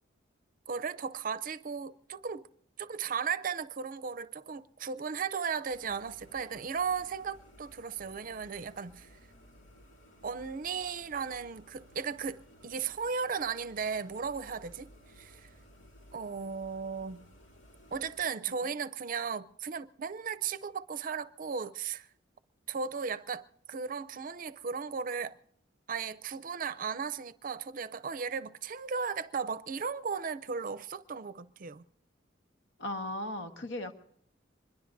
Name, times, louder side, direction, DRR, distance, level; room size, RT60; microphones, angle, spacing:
voice 1, 0.7-2.5 2.8-9.1 10.2-14.9 15.2-15.5 16.1-17.2 17.9-22.1 22.7-25.4 25.9-31.8, right 6 dB, 45° right, 0.5 m, -36 dB
sound 1, 5.7-18.2, equal, 90° left, 2.4 m, -57 dB
voice 2, 32.8-33.9, left 1 dB, 75° left, 1.4 m, -36 dB
24.5 x 21.5 x 2.6 m
head